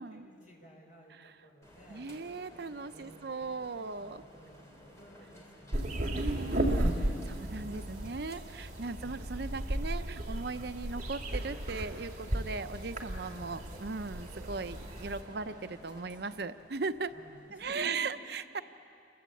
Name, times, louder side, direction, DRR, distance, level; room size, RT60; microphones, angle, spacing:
voice 1, 0.0-3.4 4.0-6.6 7.5-7.8 8.8-9.2 13.3-13.5 17.1-18.1, equal, 45° left, -1 dB, 5.5 m, -55 dB
sound 1, 1.6-17.7, equal, 15° left, 3.6 m, -56 dB
voice 2, 1.9-4.2 6.1-17.2 17.5-18.6, right 4 dB, 60° right, 11 dB, 0.7 m, -38 dB
sound 2, 5.7-15.2, right 1 dB, 40° right, 2.6 m, -35 dB
sound 3, 10.9-16.4, right 1 dB, 20° right, 3.2 m, -54 dB
29.0 x 23.0 x 8.4 m, 2.6 s
head